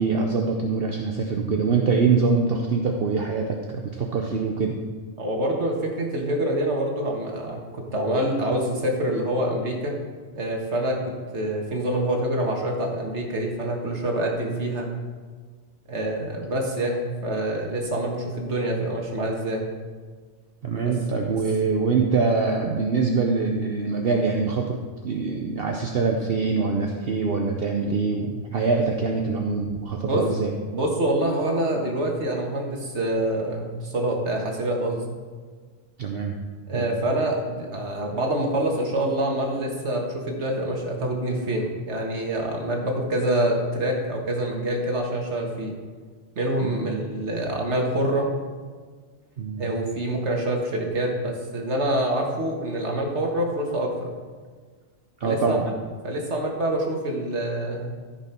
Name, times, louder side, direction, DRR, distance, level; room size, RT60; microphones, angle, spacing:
voice 1, 0.0-4.8 20.6-24.8 25.0-30.5 36.0-36.4 36.7-36.9 46.6-46.9 49.4-49.7 55.2-55.7, right 4 dB, 60° right, 2 dB, 1.0 m, -24 dB
voice 2, 5.2-9.9 10.4-14.9 15.9-19.7 20.8-20.9 30.1-30.2 30.7-35.1 36.7-45.8 46.4-48.3 49.6-54.1 55.2-55.6 56.0-58.0, right 1 dB, 75° right, 0 dB, 1.9 m, -26 dB
14.5 x 6.1 x 4.4 m, 1.5 s
omnidirectional pair, 1.2 m